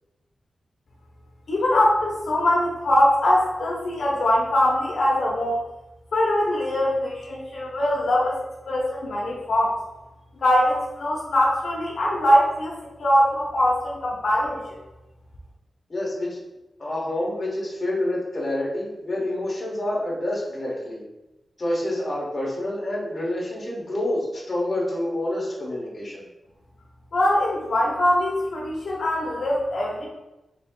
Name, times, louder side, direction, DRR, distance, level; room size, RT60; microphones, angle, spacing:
voice 1, 1.5-5.6 6.1-8.4 8.7-9.8 10.4-12.7 13.0-14.6 27.1-30.1, left 1 dB, 70° left, -4 dB, 0.8 m, -22 dB
voice 2, 15.9-16.4 16.8-21.0 21.6-26.2, left 1 dB, 30° left, -5 dB, 1.1 m, -28 dB
3.6 x 2.7 x 3.7 m, 1.0 s
wide cardioid pair, 170°, 0 cm